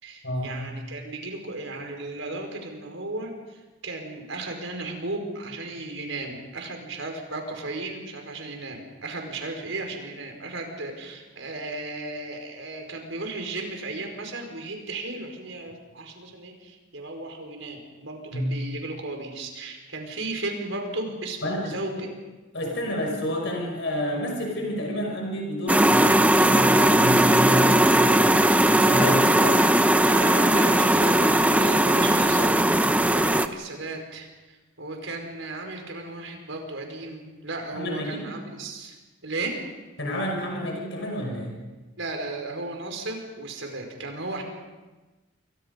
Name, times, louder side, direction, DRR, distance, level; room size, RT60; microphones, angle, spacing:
voice 1, 0.0-22.1 30.0-38.9 39.2-39.6 42.0-44.4, right 2 dB, 85° right, 3 dB, 5.1 m, -35 dB
voice 2, 21.4-22.0 22.5-29.7 37.7-38.3 40.0-41.5, equal, 70° left, 1 dB, 5.6 m, -29 dB
sound 1, 25.7-33.5, right 1 dB, 5° right, 0.7 m, -19 dB
29.0 x 23.5 x 5.3 m, 1.2 s
head